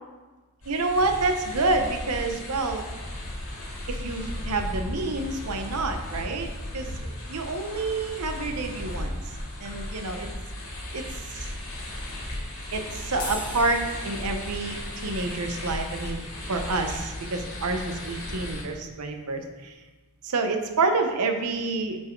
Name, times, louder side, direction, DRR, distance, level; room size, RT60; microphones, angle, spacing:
sound 1, 0.6-18.6, left 1 dB, 70° left, 2.0 m, -36 dB
voice 1, 0.7-2.9 3.9-6.5 6.7-9.2 9.6-10.3 10.9-11.0 11.3-11.5 12.7-14.8 15.0-16.2 16.5-19.7 20.2-22.0, right 3 dB, 85° right, 6 dB, 0.7 m, -28 dB
sound 2, 13.1-19.7, left 2 dB, 40° left, 1.6 m, -45 dB
5.8 x 4.6 x 4.5 m, 1.2 s
head